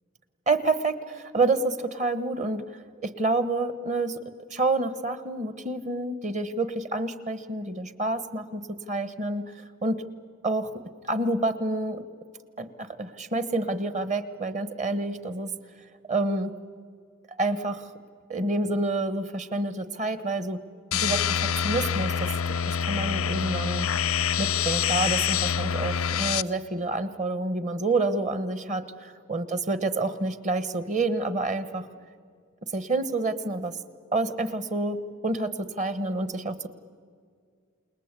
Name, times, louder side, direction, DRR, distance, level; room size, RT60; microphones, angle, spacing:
voice 1, 0.5-4.2 4.5-8.6 8.9-9.4 9.8-10.0 10.4-10.7 11.0-12.0 12.6-15.5 16.1-16.5 17.4-17.9 18.3-20.6 21.0-21.4 21.6-22.3 22.7-23.9 24.4-31.9 32.7-33.7 34.1-36.7, right 2 dB, 35° right, 13 dB, 1.2 m, -28 dB
sound 1, 20.9-26.4, left 8 dB, 85° left, 0.6 m, -26 dB
29.0 x 20.0 x 8.3 m, 2.1 s
head